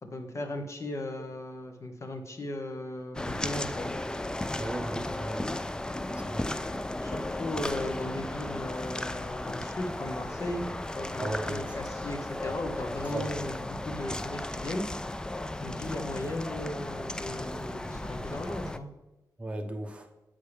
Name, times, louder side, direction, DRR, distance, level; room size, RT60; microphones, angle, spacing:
voice 1, 0.0-3.9 7.0-10.7 10.9-14.9 15.6-18.9, left 1 dB, 45° left, 4 dB, 1.1 m, -37 dB
sound 1, 3.1-18.8, left 1 dB, 10° left, 0.3 m, -35 dB
voice 2, 4.6-5.5 6.1-6.5 11.2-11.7 13.1-13.3 19.4-20.1, right 1 dB, 15° right, 3 dB, 0.9 m, -35 dB
8.5 x 5.6 x 3.4 m, 1.0 s
wide cardioid pair, 100°, 7 cm